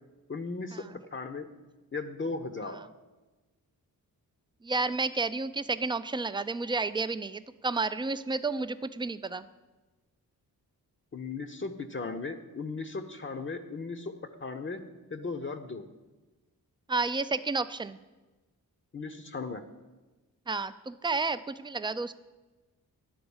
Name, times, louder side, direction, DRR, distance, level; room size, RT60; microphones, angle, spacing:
voice 1, 0.3-0.8 1.1-1.5 1.9-2.8 11.1-14.1 14.4-14.8 15.1-15.9 18.9-19.6, left 4 dB, 30° left, 7 dB, 0.7 m, -36 dB
voice 2, 4.6-9.5 16.9-18.0 20.5-22.1, right 3 dB, 15° right, 13 dB, 0.3 m, -31 dB
10.5 x 3.9 x 7.1 m, 1.2 s
cardioid pair, 60°, 38 cm